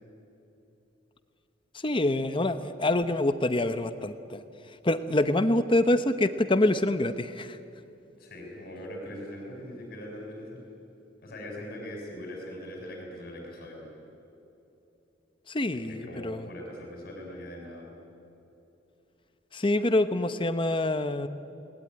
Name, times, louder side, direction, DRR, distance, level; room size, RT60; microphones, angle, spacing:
voice 1, 1.8-4.4 4.8-7.6 15.5-16.4 19.5-21.3, left 1 dB, 25° left, 10 dB, 0.8 m, -26 dB
voice 2, 8.2-10.6 11.2-13.9 15.9-17.9, left 1 dB, 50° left, 1 dB, 6.5 m, -41 dB
28.5 x 20.0 x 9.7 m, 2.8 s
head